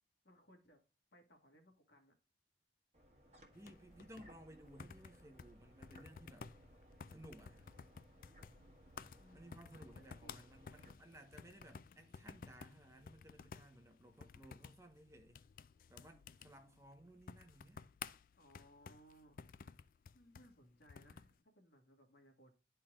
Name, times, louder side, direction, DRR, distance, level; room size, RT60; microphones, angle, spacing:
voice 1, 0.2-0.8 1.1-2.1 9.2-10.8 16.0-16.2 16.6-16.8 18.4-19.5 20.1-22.5, equal, 75° left, 1.7 m, -65 dB
sound 1, 2.9-10.9, equal, 35° right, 1.5 m, -63 dB
sound 2, 3.5-21.4, left 6 dB, 50° left, 0.3 m, -55 dB
voice 2, 3.5-6.5 7.1-7.7 9.3-15.4 15.9-17.8, right 1 dB, 15° right, 0.9 m, -59 dB
12.0 x 4.4 x 2.4 m
head